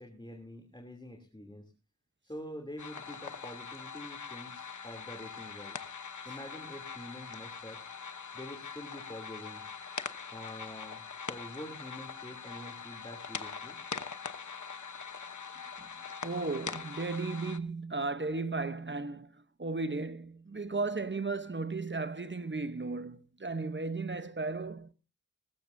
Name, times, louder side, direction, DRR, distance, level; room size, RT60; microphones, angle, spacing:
voice 1, 0.0-1.7 2.2-5.8 6.2-7.8 8.3-9.6 10.3-13.7, equal, 15° left, 2.9 m, -46 dB
sound 1, 2.8-17.6, left 5 dB, 75° left, 1.0 m, -43 dB
voice 2, 16.2-24.9, right 3 dB, 40° right, 0.9 m, -35 dB
19.0 x 15.0 x 2.6 m
wide cardioid pair, 50°, 30 cm